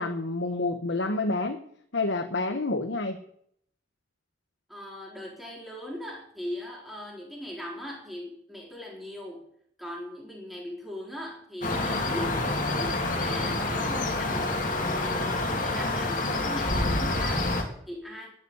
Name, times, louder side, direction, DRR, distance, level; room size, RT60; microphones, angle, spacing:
voice 1, 0.0-1.6 1.9-3.2, left 2 dB, 85° left, 6 dB, 1.2 m, -28 dB
voice 2, 4.7-9.5 9.8-12.5 12.8-18.3, equal, ahead, -2 dB, 4.2 m, -39 dB
sound 1, 11.6-17.6, left 2 dB, 45° left, 2.8 m, -27 dB
12.0 x 9.2 x 9.8 m, 0.66 s
head